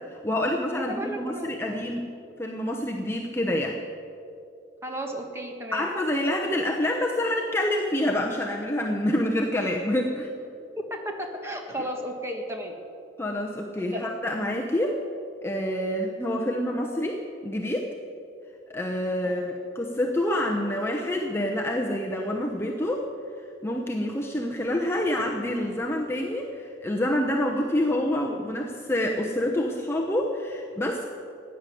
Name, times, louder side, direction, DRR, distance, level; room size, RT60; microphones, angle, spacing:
voice 1, 0.0-2.0 2.4-3.8 5.7-10.3 13.2-15.0 15.4-17.9 18.7-23.1 23.6-31.1, left 1 dB, 15° left, 0 dB, 0.8 m, -27 dB
voice 2, 0.8-1.8 4.8-5.9 10.6-12.7 13.8-14.1 19.2-19.4, equal, 15° right, 2 dB, 1.6 m, -34 dB
16.0 x 10.0 x 7.7 m, 2.6 s
head